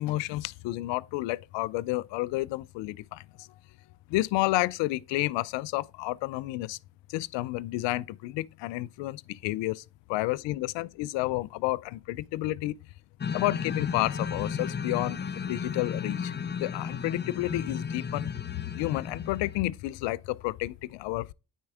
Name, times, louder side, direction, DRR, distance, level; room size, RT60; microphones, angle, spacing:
voice 1, 0.0-3.5 4.1-6.8 7.1-9.8 10.1-12.8 13.3-16.3 16.6-21.3, left 18 dB, 75° left, 0.5 m, -31 dB
sound 1, 13.2-19.6, left 6 dB, 25° left, 0.5 m, -34 dB
9.5 x 4.4 x 3.5 m
supercardioid pair, 60°, 43 cm